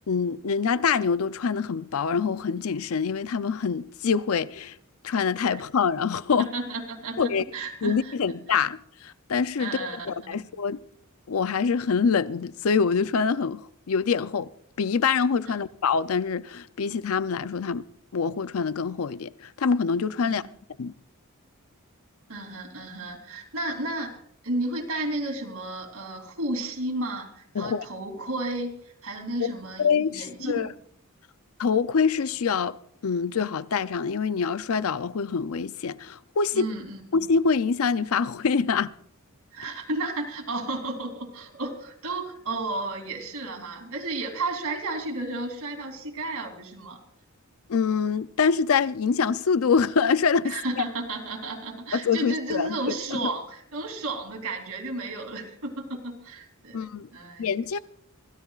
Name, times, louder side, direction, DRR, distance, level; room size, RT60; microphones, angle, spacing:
voice 1, 0.1-4.8 5.0-6.5 7.2-7.4 7.8-10.8 11.3-14.5 14.8-17.8 18.1-20.4 20.8-20.9 27.5-27.8 29.4-29.5 29.8-30.7 31.6-32.8 33.0-36.7 37.1-38.9 47.7-50.8 51.9-52.8 53.1-53.2 56.7-57.1 57.4-57.8, left 5 dB, 70° left, 0.5 m, -25 dB
voice 2, 6.4-8.1 9.6-10.5 15.5-15.6 20.2-20.5 22.3-30.7 36.5-37.0 39.5-47.0 50.4-57.5, right 2 dB, 75° right, 3.2 m, -33 dB
26.0 x 16.5 x 2.4 m
head